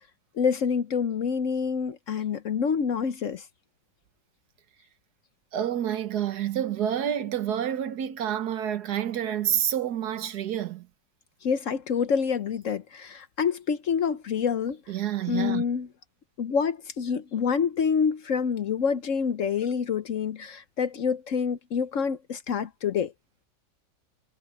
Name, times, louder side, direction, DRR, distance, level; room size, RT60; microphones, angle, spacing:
voice 1, 0.3-3.5 11.4-14.8 15.3-15.9 16.4-23.1, left 6 dB, 55° left, 0.9 m, -27 dB
voice 2, 5.5-10.9 14.9-15.6, right 10 dB, 65° right, 1.5 m, -28 dB
omnidirectional pair, 1.9 m